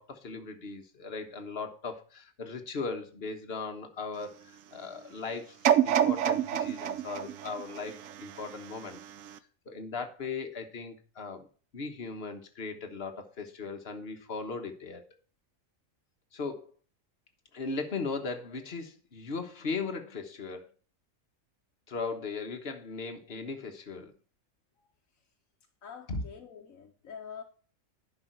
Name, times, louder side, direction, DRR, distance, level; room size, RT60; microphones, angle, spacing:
voice 1, 0.0-4.3 4.7-5.6 5.8-9.0 9.6-11.5 11.7-15.0 16.3-16.7 17.5-20.7 21.9-24.1 26.1-26.2, left 4 dB, 50° left, 6 dB, 1.5 m, -38 dB
sound 1, 5.6-8.7 9.3-9.4, right 10 dB, 75° right, 1.1 m, -27 dB
voice 2, 25.8-27.4, left 7 dB, 80° left, 3 dB, 1.4 m, -46 dB
10.5 x 5.6 x 4.5 m, 0.40 s
omnidirectional pair, 1.4 m